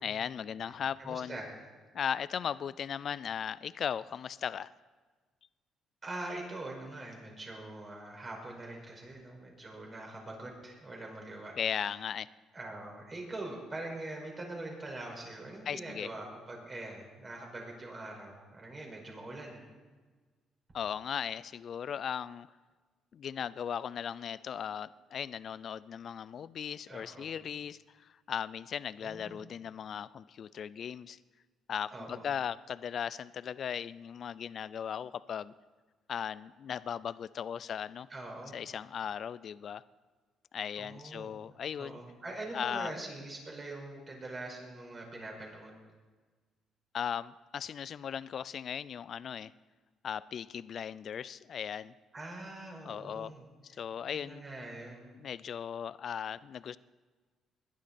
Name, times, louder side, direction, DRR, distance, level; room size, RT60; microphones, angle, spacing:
voice 1, 0.0-1.4 1.9-4.7 11.6-12.3 15.7-16.1 20.7-22.5 23.1-31.2 31.7-35.5 36.1-38.1 38.5-39.8 40.5-42.0 42.5-42.9 46.9-49.5 50.0-51.9 52.8-53.3 53.6-54.4 55.2-56.8, left 8 dB, 55° left, 18 dB, 0.4 m, -37 dB
voice 2, 0.6-1.5 6.0-11.8 12.5-19.6 26.9-27.3 29.0-29.4 31.9-32.3 38.1-38.6 40.8-41.3 41.8-45.8 52.1-53.4 54.1-55.1, right 2 dB, 30° right, 0 dB, 5.2 m, -43 dB
21.0 x 11.5 x 4.3 m, 1.4 s
cardioid pair, 85°, 0 cm